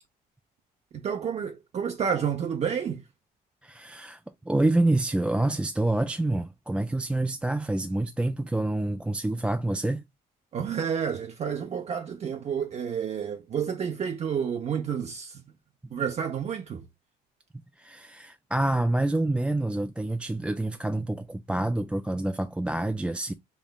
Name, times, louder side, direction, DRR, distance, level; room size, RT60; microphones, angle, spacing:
voice 1, 0.9-3.1 10.5-15.5 15.9-16.9, right 7 dB, 40° right, 0.7 m, -30 dB
voice 2, 3.6-10.0 15.8-15.9 17.8-23.3, right 2 dB, 5° right, 0.3 m, -27 dB
5.3 x 3.0 x 2.2 m
cardioid pair, 110°, 17 cm